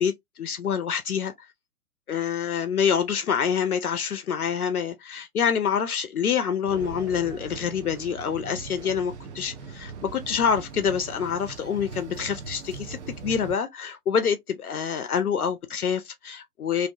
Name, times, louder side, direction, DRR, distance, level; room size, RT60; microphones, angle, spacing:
voice 1, 0.0-1.3 2.1-16.9, left 7 dB, 70° left, 0.5 m, -26 dB
sound 1, 6.7-13.6, right 5 dB, 50° right, 0.5 m, -40 dB
2.5 x 2.2 x 2.4 m
figure-of-eight pair, 120°, 46 cm